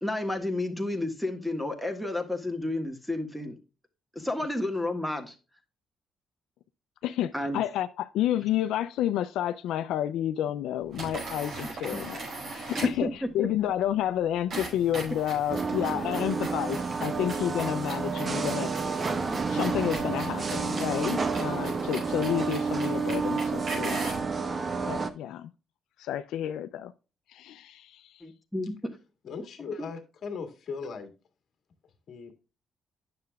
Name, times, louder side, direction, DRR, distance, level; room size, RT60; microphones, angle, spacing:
voice 1, 0.0-3.5 4.1-5.3 7.3-7.6 11.6-12.0 12.8-13.5 28.2-28.9, left 1 dB, ahead, 1.5 m, -31 dB
voice 2, 7.0-12.2 12.5-13.1 13.3-18.7 19.3-24.0 24.9-25.5 26.0-26.9 27.3-28.2, left 11 dB, 85° left, 0.4 m, -30 dB
sound 1, 10.9-13.1 14.5-24.3, right 2 dB, 70° right, 4.4 m, -39 dB
sound 2, 15.5-25.1, right 4 dB, 35° right, 0.9 m, -30 dB
voice 3, 29.2-31.1 32.1-32.3, left 5 dB, 60° left, 1.8 m, -38 dB
9.6 x 6.7 x 2.3 m
cardioid pair, 90°, 0 cm